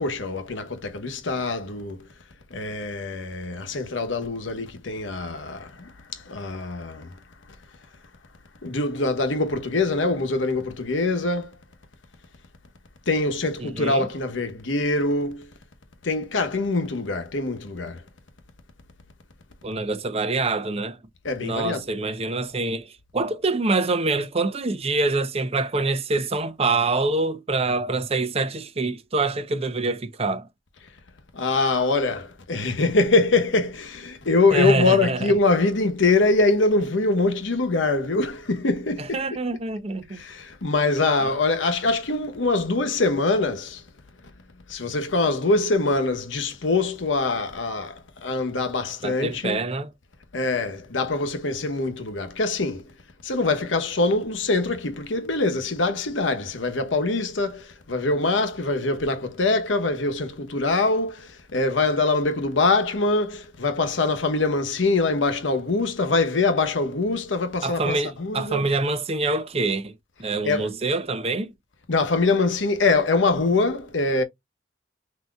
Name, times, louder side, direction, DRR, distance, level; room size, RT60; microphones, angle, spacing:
voice 1, 0.0-2.0 2.5-7.1 8.6-11.6 13.1-15.5 16.0-18.0 21.2-21.8 31.3-39.2 40.1-43.8 44.7-49.6 50.3-52.8 53.2-68.7 70.4-70.7 71.9-74.2, left 3 dB, 90° left, 1.0 m, -24 dB
voice 2, 13.6-14.1 19.6-21.0 21.4-30.5 34.5-35.3 39.0-40.2 41.2-41.3 49.0-49.9 67.6-69.9 70.2-71.5, right 3 dB, 35° right, 0.7 m, -25 dB
5.9 x 2.8 x 2.3 m
head